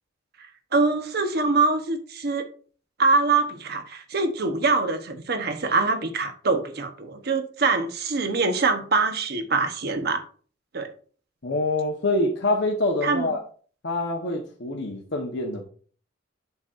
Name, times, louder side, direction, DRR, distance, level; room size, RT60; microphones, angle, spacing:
voice 1, 0.7-2.5 3.0-10.2 10.7-10.9 13.0-13.3, right 3 dB, 55° right, 1.0 m, -24 dB
voice 2, 11.4-13.4 13.8-15.7, left 2 dB, 60° left, 1.1 m, -25 dB
8.1 x 6.1 x 2.5 m
head